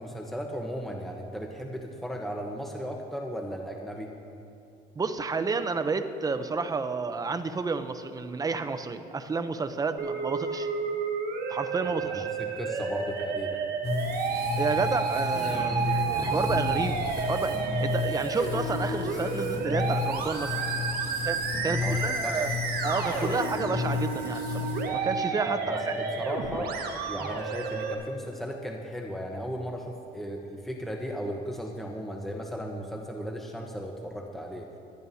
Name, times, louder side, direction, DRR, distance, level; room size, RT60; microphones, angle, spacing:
voice 1, 0.0-4.1 11.8-13.7 21.7-22.4 25.5-26.7 27.1-34.7, equal, ahead, 1 dB, 1.0 m, -36 dB
voice 2, 5.0-10.7 11.5-12.3 14.6-20.6 21.2-22.6 22.8-25.9, right 4 dB, 20° right, 9 dB, 0.7 m, -31 dB
Musical instrument, 10.0-27.9, right 5 dB, 65° right, 1.5 m, -31 dB
sound 1, 13.8-24.9, left 6 dB, 40° left, 3.3 m, -33 dB
sound 2, 15.3-23.5, right 1 dB, 40° right, 2.0 m, -42 dB
20.0 x 12.5 x 2.8 m, 2.6 s
cardioid pair, 110°, 17 cm